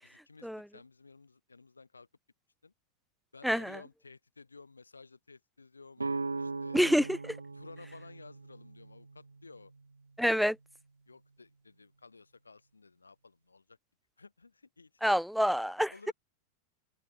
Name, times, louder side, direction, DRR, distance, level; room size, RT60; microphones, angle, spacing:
voice 1, 0.0-2.1 2.6-2.7 3.3-6.0 6.4-6.8 7.5-9.7 11.1-13.8 14.2-15.0 15.9-16.1, left 4 dB, 80° left, 4.6 m, -54 dB
voice 2, 3.4-3.8 6.7-7.4 10.2-10.6 15.0-16.1, equal, ahead, 0.5 m, -27 dB
sound 1, 6.0-9.8, right 3 dB, 80° right, 1.5 m, -39 dB
open air
figure-of-eight pair, 90°, 0 cm